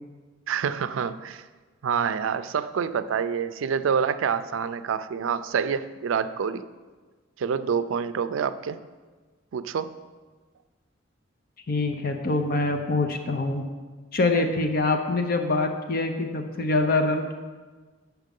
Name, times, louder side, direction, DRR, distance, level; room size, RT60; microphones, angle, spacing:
voice 1, 0.5-1.4 1.8-6.7 7.4-8.8 9.5-10.0, right 7 dB, 85° right, 13 dB, 0.4 m, -27 dB
voice 2, 11.7-13.7 14.1-17.3, left 2 dB, 50° left, 5 dB, 0.7 m, -25 dB
7.4 x 5.9 x 5.3 m, 1.4 s
head